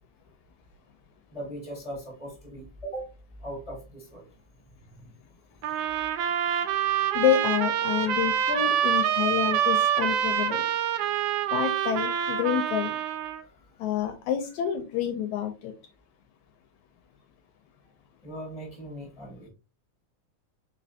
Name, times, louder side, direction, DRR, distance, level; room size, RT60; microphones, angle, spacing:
voice 1, 1.3-3.1 3.4-4.3 4.8-5.1 13.4-13.8 18.2-19.5, right 1 dB, 5° right, -1 dB, 1.2 m, -40 dB
sound 1, 5.6-13.4, right 9 dB, 80° right, 2.0 m, -26 dB
voice 2, 7.1-10.6 11.5-12.9 13.8-15.7, left 9 dB, 80° left, 7 dB, 1.8 m, -28 dB
4.2 x 4.1 x 2.7 m, 0.31 s
omnidirectional pair, 3.6 m